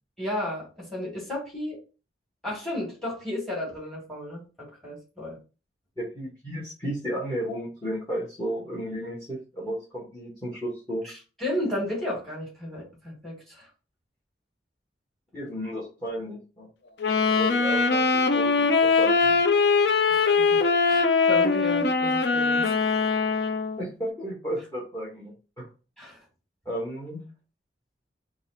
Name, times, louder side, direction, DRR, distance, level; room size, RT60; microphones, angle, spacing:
voice 1, 0.2-1.8 2.4-5.4 11.0-11.1 11.4-13.7 20.1-22.9 26.0-26.2, left 1 dB, ahead, -4 dB, 2.1 m, -33 dB
voice 2, 6.0-11.1 15.3-16.7 17.3-18.7 19.0-19.4 23.8-25.6 26.6-27.2, equal, 15° left, -7 dB, 1.3 m, -33 dB
Wind instrument woodwind instrument, 17.0-23.8, left 4 dB, 65° left, 0.5 m, -22 dB
4.0 x 2.5 x 4.0 m, 0.33 s
head